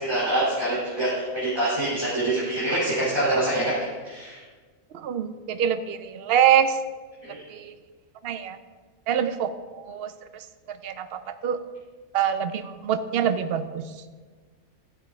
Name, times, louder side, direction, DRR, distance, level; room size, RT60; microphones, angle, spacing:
voice 1, 0.0-3.7 4.0-4.4 7.3-7.4, right 1 dB, 20° right, -10 dB, 3.0 m, -25 dB
voice 2, 4.9-6.8 7.5-7.7 8.2-8.6 9.1-10.4 10.8-11.6 12.1-13.8, right 9 dB, 60° right, 11 dB, 0.6 m, -25 dB
15.0 x 6.9 x 3.5 m, 1.4 s
omnidirectional pair, 1.5 m